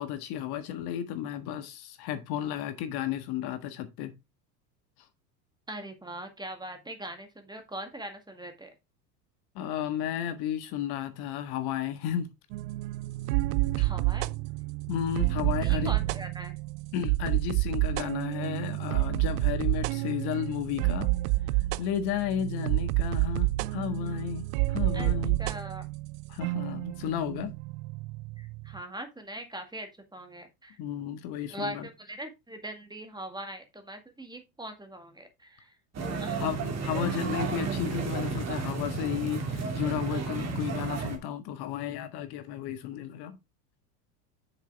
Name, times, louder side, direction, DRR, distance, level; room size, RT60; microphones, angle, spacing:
voice 1, 0.0-4.1 9.5-12.3 13.8-13.9 14.9-15.9 16.9-21.1 21.8-25.4 26.3-27.5 30.8-31.9 36.4-43.4, left 10 dB, 50° left, 1.6 m, -33 dB
voice 2, 5.7-8.7 13.8-14.3 15.6-16.6 24.9-25.1 25.4-25.9 28.4-30.8 31.5-35.8 36.1-36.4, right 1 dB, 10° right, 1.9 m, -41 dB
sound 1, 12.5-28.8, right 20 dB, 55° right, 0.6 m, -29 dB
sound 2, 35.9-41.2, right 4 dB, 30° right, 2.7 m, -32 dB
7.3 x 6.7 x 3.5 m
hypercardioid pair, 90°, 49 cm